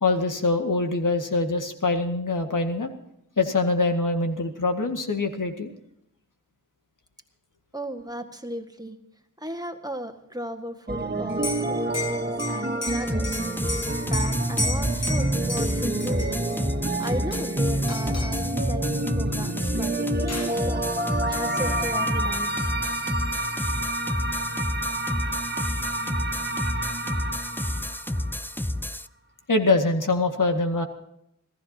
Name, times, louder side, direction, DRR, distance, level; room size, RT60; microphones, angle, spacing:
voice 1, 0.0-2.9 3.4-5.7 29.5-30.9, left 3 dB, 80° left, 4 dB, 2.0 m, -24 dB
voice 2, 7.7-9.0 9.4-13.4 14.0-16.4 17.0-22.5, equal, 10° right, 5 dB, 1.8 m, -36 dB
sound 1, 10.9-28.5, right 1 dB, 35° right, 1.9 m, -28 dB
Liquid, 11.3-16.6 17.0-17.6 17.9-18.5 19.6-19.7 20.0-20.6, left 2 dB, 55° left, 1.6 m, -34 dB
sound 2, 13.1-29.1, left 1 dB, 5° left, 0.5 m, -30 dB
27.0 x 16.0 x 2.9 m, 0.78 s
wide cardioid pair, 70°, 31 cm